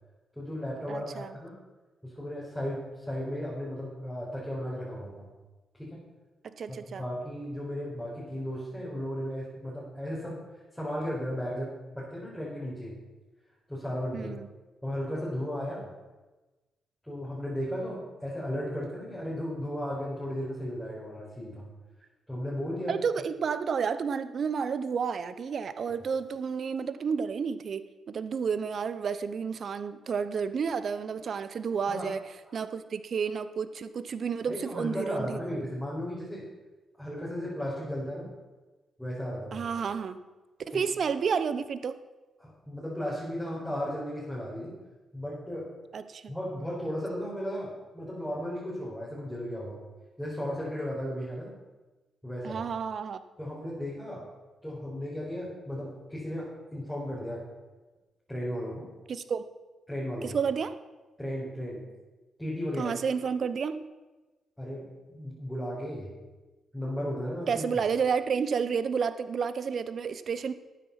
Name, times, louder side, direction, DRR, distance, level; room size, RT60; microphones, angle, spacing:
voice 1, 0.4-1.6 2.0-5.3 5.8-6.0 6.7-10.4 10.7-12.9 13.7-14.3 14.8-15.9 17.1-21.7 22.3-23.0 31.9-32.1 34.5-36.4 37.0-38.3 39.0-39.7 40.7-40.8 42.4-44.7 45.1-45.7 46.3-49.8 50.2-51.5 52.2-52.6 53.4-54.3 54.6-57.5 58.3-58.9 59.9-60.4 61.2-61.8 62.4-62.9 64.6-66.1 66.7-67.6, equal, 5° left, -8 dB, 4.9 m, -35 dB
voice 2, 0.9-1.4 6.4-7.0 14.1-14.5 22.9-32.2 32.5-35.7 39.5-40.2 40.6-42.0 45.9-46.3 52.4-53.2 59.1-59.4 60.2-60.7 62.8-63.8 67.5-70.5, right 6 dB, 60° right, 13 dB, 0.8 m, -31 dB
12.0 x 9.2 x 5.7 m, 1.2 s
supercardioid pair, 55°, 0 cm